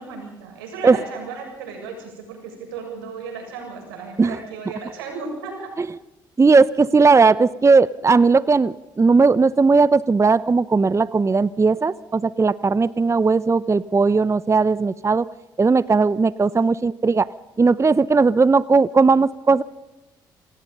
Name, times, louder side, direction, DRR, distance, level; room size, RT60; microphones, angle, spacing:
voice 1, 0.0-5.7, right 4 dB, 90° right, 3 dB, 7.1 m, -35 dB
voice 2, 6.4-15.2 15.6-17.3 17.6-19.6, right 4 dB, 25° right, 18 dB, 0.8 m, -17 dB
28.0 x 19.5 x 5.5 m, 1.0 s
hypercardioid pair, 55°, 12 cm